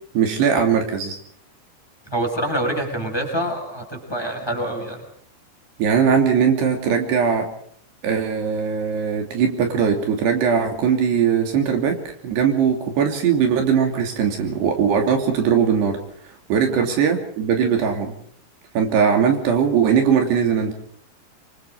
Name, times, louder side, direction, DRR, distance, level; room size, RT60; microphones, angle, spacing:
voice 1, 0.1-1.2 5.8-7.5 8.0-12.0 12.2-16.0 16.5-18.1 18.7-20.7, right 7 dB, 70° right, 4 dB, 4.9 m, -20 dB
voice 2, 2.1-5.0 16.7-16.8, right 1 dB, 5° left, 3 dB, 5.9 m, -26 dB
26.5 x 24.5 x 5.0 m, 0.62 s
omnidirectional pair, 5.0 m